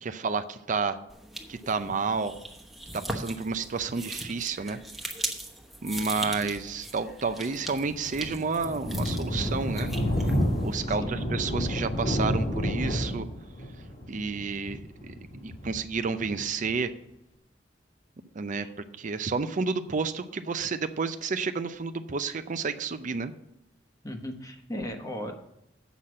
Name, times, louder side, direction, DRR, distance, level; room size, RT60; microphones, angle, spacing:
voice 1, 0.0-1.0 1.5-2.3 2.9-4.8 5.8-9.9 10.6-13.3 14.1-15.1 15.4-16.9 18.3-18.7 19.0-23.3, right 4 dB, 45° right, 10 dB, 0.5 m, -30 dB
sound 1, 1.1-10.8, right 1 dB, ahead, 1.1 m, -40 dB
Thunder, 7.6-16.7, equal, 50° left, 1.9 m, -30 dB
voice 2, 10.9-11.2 18.5-18.7 24.0-25.3, equal, 20° left, 3 dB, 1.1 m, -37 dB
8.2 x 5.8 x 7.5 m, 0.83 s
head